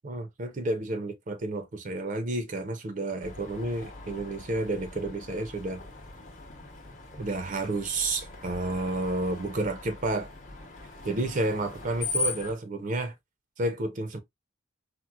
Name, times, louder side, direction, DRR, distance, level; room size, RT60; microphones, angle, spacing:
voice 1, 0.0-5.8 7.2-10.3 11.0-13.1 13.6-14.2, right 2 dB, 40° right, 0.5 m, -31 dB
Screech, 3.2-12.5, left 3 dB, 40° left, 0.8 m, -39 dB
4.3 x 2.0 x 2.2 m
head